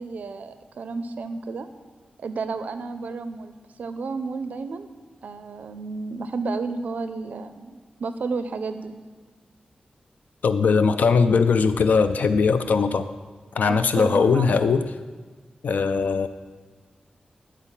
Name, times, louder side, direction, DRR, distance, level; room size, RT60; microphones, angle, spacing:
voice 1, 0.0-1.7 2.2-3.5 3.8-4.9 5.2-8.9 13.6-14.6, right 4 dB, 70° right, 10 dB, 0.4 m, -32 dB
voice 2, 10.4-13.1 13.6-14.9 15.6-16.3, left 5 dB, 70° left, 10 dB, 0.3 m, -20 dB
9.7 x 4.5 x 7.0 m, 1.4 s
wide cardioid pair, 175°, 3 cm